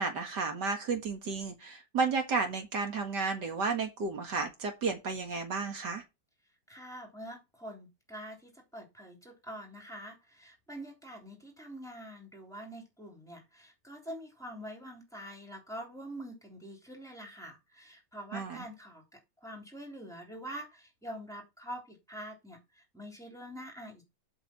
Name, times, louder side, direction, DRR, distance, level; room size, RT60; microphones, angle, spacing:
voice 1, 0.0-6.0 18.3-18.6, right 4 dB, 70° right, 2.3 m, -32 dB
voice 2, 6.7-24.0, equal, ahead, 3.4 m, -45 dB
8.1 x 4.9 x 7.2 m
omnidirectional pair, 1.9 m